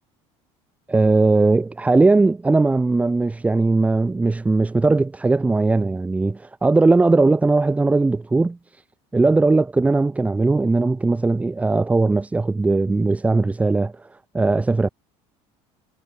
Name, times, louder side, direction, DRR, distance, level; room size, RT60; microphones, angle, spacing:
voice 1, 0.9-8.6 9.1-14.1 14.3-14.9, right 3 dB, 10° right, 4.1 m, -19 dB
cardioid pair, 150°, 13 cm